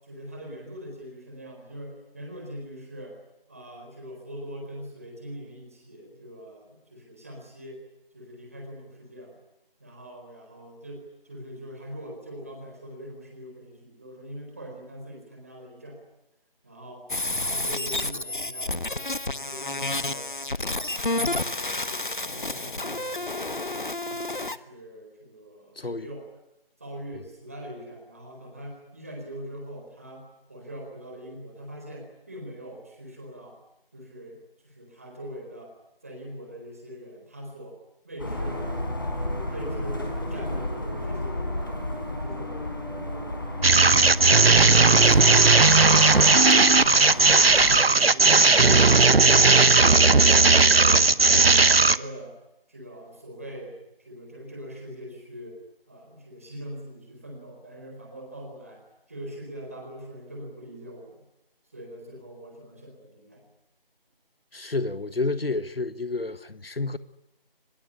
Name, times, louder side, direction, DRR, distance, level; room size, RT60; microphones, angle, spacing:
voice 1, 0.0-3.2 3.5-7.8 8.1-9.4 9.8-16.0 16.6-17.0 17.3-20.3 20.7-23.4 23.9-26.3 26.8-33.6 33.9-34.4 34.6-35.7 36.0-37.8 38.0-38.9 39.1-41.8 42.2-43.6 43.9-48.9 49.2-52.3 52.7-53.7 54.0-55.6 55.9-58.8 59.1-61.2 61.7-63.4, equal, 15° right, 4.3 m, -42 dB
sound 1, 17.1-24.6, left 2 dB, 55° left, 1.2 m, -30 dB
voice 2, 25.8-26.1 64.5-67.0, left 3 dB, 80° left, 1.5 m, -30 dB
sound 2, 38.2-47.8, left 1 dB, 25° left, 4.4 m, -32 dB
sound 3, 43.6-52.0, right 3 dB, 80° right, 1.1 m, -16 dB
24.5 x 21.5 x 9.9 m
figure-of-eight pair, 180°, 29 cm